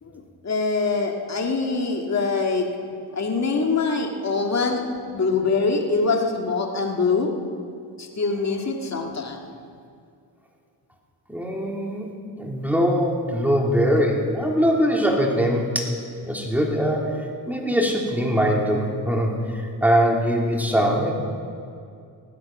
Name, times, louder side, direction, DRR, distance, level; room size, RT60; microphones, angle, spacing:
voice 1, 0.0-2.7 3.1-4.8 5.1-7.3 8.0-9.4, left 4 dB, 40° left, 2 dB, 2.0 m, -24 dB
voice 2, 11.3-12.1 12.4-15.9 16.2-21.1, equal, 5° right, -1 dB, 3.2 m, -22 dB
17.0 x 12.0 x 6.1 m, 2.4 s
cardioid pair, 70°, 42 cm